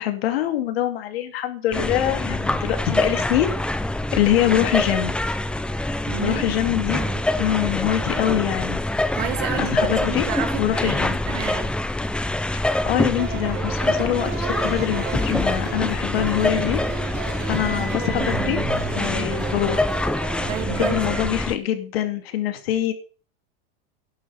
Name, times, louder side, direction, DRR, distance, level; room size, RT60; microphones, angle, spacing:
voice 1, 0.0-3.5 4.1-5.1 6.2-7.0 7.4-8.8 9.6-10.3 10.6-11.2 12.5-16.8 17.4-18.6 19.0-19.9 20.7-22.9, left 12 dB, 90° left, 2.5 m, -24 dB
sound 1, 1.7-21.6, left 1 dB, 5° left, 0.6 m, -25 dB
voice 2, 6.1-6.5 6.9-7.2 9.1-11.0 11.2-11.7 20.5-21.3, right 11 dB, 65° right, 3.1 m, -31 dB
sound 2, 13.2-21.2, right 8 dB, 35° right, 3.1 m, -33 dB
11.5 x 7.7 x 7.0 m
supercardioid pair, 145°, 29 cm